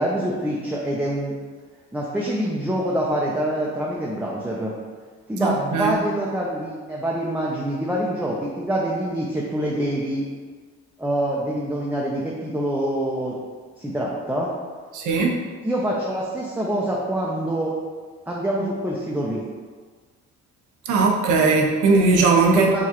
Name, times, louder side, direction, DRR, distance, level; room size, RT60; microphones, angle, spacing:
voice 1, 0.0-1.3 1.9-4.7 5.3-10.3 11.0-13.4 13.8-14.5 15.6-17.7 18.3-19.4 22.5-22.9, right 1 dB, 5° right, -4 dB, 0.5 m, -25 dB
voice 2, 5.4-6.0 14.9-15.4 20.9-22.9, right 3 dB, 80° right, 1 dB, 0.7 m, -19 dB
4.7 x 2.3 x 2.9 m, 1.5 s
cardioid pair, 90°, 30 cm